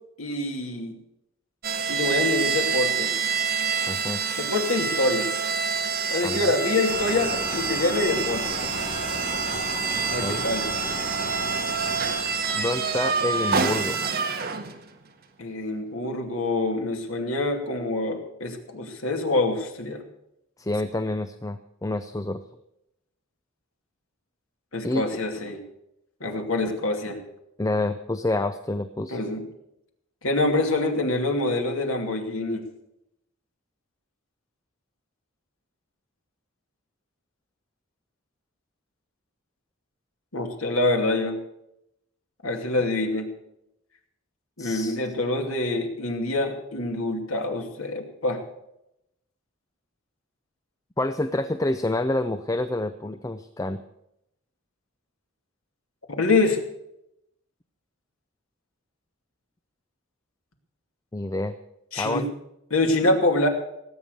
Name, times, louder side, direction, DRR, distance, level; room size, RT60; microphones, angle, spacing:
voice 1, 0.2-1.0 1.9-3.1 4.4-5.3 6.1-8.6 10.1-10.7 15.4-20.0 24.7-25.6 26.2-27.2 29.1-29.5 30.2-32.7 40.3-41.4 42.4-43.3 44.6-48.4 56.1-56.6 61.9-62.3 62.7-63.5, left 2 dB, 90° left, 3 dB, 2.6 m, -25 dB
sound 1, 1.6-14.9, right 6 dB, 50° right, 1.7 m, -27 dB
voice 2, 3.9-4.2 6.2-6.4 10.2-10.4 12.5-14.0 20.6-22.4 24.8-25.0 27.6-29.2 44.6-45.0 51.0-53.8 61.1-61.6 62.0-62.3, left 2 dB, 15° left, 10 dB, 0.5 m, -28 dB
sound 2, 6.9-13.6, left 2 dB, 35° left, 1.5 m, -35 dB
18.0 x 9.0 x 6.6 m, 0.83 s
head